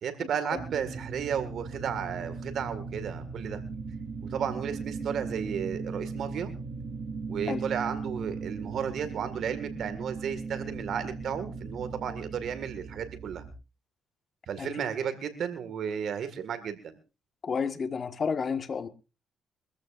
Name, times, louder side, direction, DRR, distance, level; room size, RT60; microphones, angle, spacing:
voice 1, 0.0-3.6 4.3-6.5 7.3-13.4 14.5-17.0, right 8 dB, 65° right, 1.8 m, -33 dB
sound 1, 0.6-13.5, right 4 dB, 50° right, 2.1 m, -38 dB
voice 2, 17.4-18.9, left 5 dB, 45° left, 1.5 m, -31 dB
24.0 x 14.0 x 2.5 m
cardioid pair, 90°, 0 cm